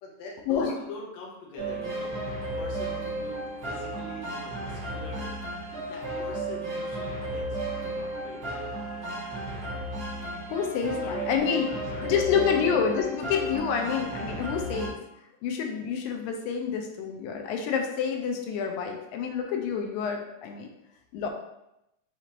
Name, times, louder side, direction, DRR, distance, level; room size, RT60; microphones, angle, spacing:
voice 1, 0.0-2.2 2.6-3.4 3.6-5.3 5.9-8.8 10.6-11.3 11.7-12.9, left 2 dB, 70° left, -2 dB, 1.8 m, -44 dB
sound 1, 1.6-14.9, right 1 dB, 40° right, 2.1 m, -34 dB
voice 2, 10.5-15.0 15.4-20.7 21.1-21.3, left 7 dB, 85° left, 3 dB, 2.3 m, -28 dB
6.0 x 3.0 x 2.8 m, 0.86 s
omnidirectional pair, 3.9 m